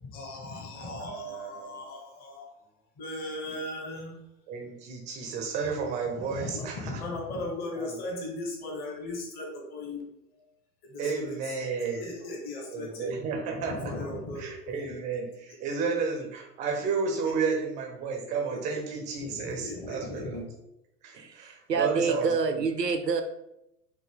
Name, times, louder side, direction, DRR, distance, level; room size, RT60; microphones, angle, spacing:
voice 1, 0.0-2.5 3.0-4.2 6.2-10.0 10.9-11.3 12.0-13.1 13.8-15.0 17.2-17.3 18.5-18.6 19.3-20.4, left 2 dB, 20° left, 0 dB, 0.8 m, -37 dB
voice 2, 0.7-1.8 4.5-6.9 7.8-8.0 11.0-12.1 12.7-13.9 14.4-20.5 21.0-22.6, right 5 dB, 15° right, 2 dB, 0.5 m, -32 dB
voice 3, 21.1-23.2, right 5 dB, 90° right, 7 dB, 0.6 m, -27 dB
5.1 x 2.7 x 3.4 m, 0.86 s
figure-of-eight pair, 95°, 48 cm